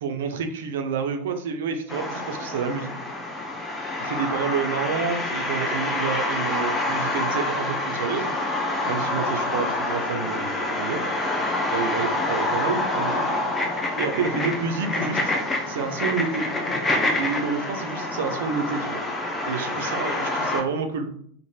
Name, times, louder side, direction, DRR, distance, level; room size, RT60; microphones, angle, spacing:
voice 1, 0.0-2.9 4.0-8.3 8.9-11.1 11.7-13.2 13.7-15.2 15.7-16.5 17.2-19.1 19.5-21.1, right 5 dB, 55° right, 6 dB, 0.4 m, -29 dB
sound 1, 1.9-20.6, left 2 dB, 15° left, 0.5 m, -27 dB
3.0 x 2.5 x 2.3 m, 0.62 s
figure-of-eight pair, 90°, 0 cm